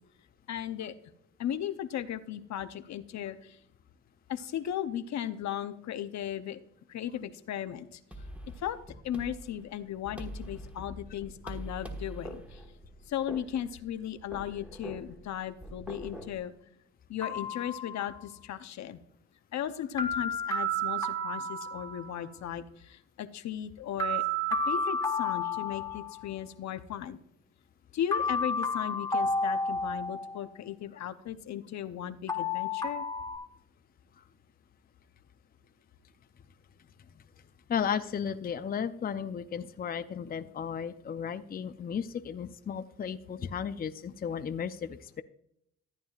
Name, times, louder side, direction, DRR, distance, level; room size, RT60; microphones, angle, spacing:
voice 1, 0.5-0.9 1.4-3.6 4.3-6.6 6.9-8.0 8.6-8.8 9.0-12.6 13.1-16.5 17.1-19.0 19.5-24.2 24.7-27.2 27.9-33.0, left 10 dB, 65° left, 11 dB, 0.8 m, -36 dB
sound 1, 8.1-16.4, equal, 5° right, 1.5 m, -44 dB
sound 2, 17.2-18.4 20.0-22.3 24.0-26.3 28.1-30.5 32.3-33.4, left 1 dB, 10° left, 1.5 m, -31 dB
voice 2, 37.7-45.2, left 7 dB, 30° left, 10 dB, 0.5 m, -34 dB
14.0 x 9.1 x 2.4 m, 0.72 s
cardioid pair, 90°, 30 cm